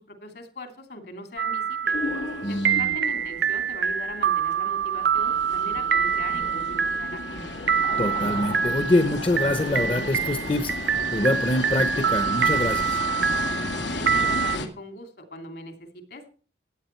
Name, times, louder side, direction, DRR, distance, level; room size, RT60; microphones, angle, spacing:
voice 1, 0.1-2.0 2.5-7.5 13.9-16.3, left 1 dB, 60° left, 6 dB, 2.7 m, -40 dB
sound 1, 1.4-14.6, right 7 dB, 75° right, 0.7 m, -26 dB
sound 2, 1.9-14.7, left 2 dB, 85° left, 2.0 m, -34 dB
voice 2, 2.4-2.9 8.0-13.0, left 1 dB, 30° left, 8 dB, 0.9 m, -25 dB
15.5 x 9.7 x 4.5 m, 0.40 s
head